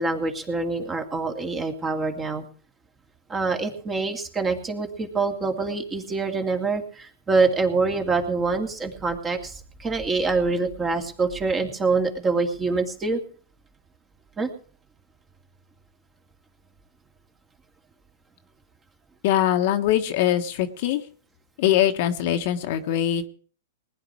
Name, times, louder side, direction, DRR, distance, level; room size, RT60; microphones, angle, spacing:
voice 1, 0.0-2.4 3.3-13.2 14.4-14.5, right 3 dB, 20° right, 5 dB, 2.4 m, -25 dB
voice 2, 19.2-21.0 21.6-23.3, left 11 dB, 50° left, 6 dB, 1.4 m, -22 dB
19.5 x 10.0 x 4.8 m, 0.43 s
hypercardioid pair, 130°, 0 cm